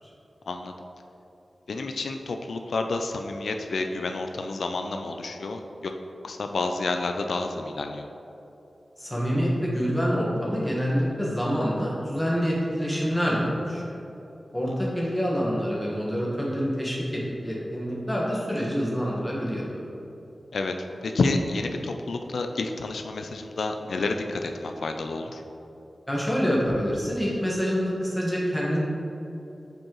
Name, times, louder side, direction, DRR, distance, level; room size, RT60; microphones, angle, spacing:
voice 1, 1.7-5.9 6.2-8.1 20.5-20.7 21.0-25.4, left 3 dB, 90° left, 5 dB, 0.3 m, -29 dB
voice 2, 9.0-13.9 14.5-19.6 26.1-28.8, equal, 10° left, -5 dB, 1.4 m, -26 dB
7.6 x 4.5 x 3.0 m, 3.0 s
wide cardioid pair, 115°, 0 cm